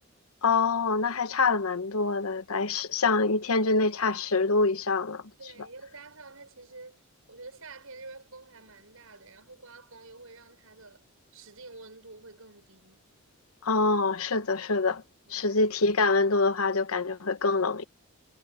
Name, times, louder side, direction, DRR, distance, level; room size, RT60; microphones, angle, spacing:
voice 1, 0.4-5.2 13.6-15.0 15.3-17.8, left 3 dB, 80° left, 1.1 m, -25 dB
voice 2, 5.4-7.0 7.3-11.0 11.3-13.0 15.2-15.5, right 3 dB, 75° right, 6.5 m, -48 dB
head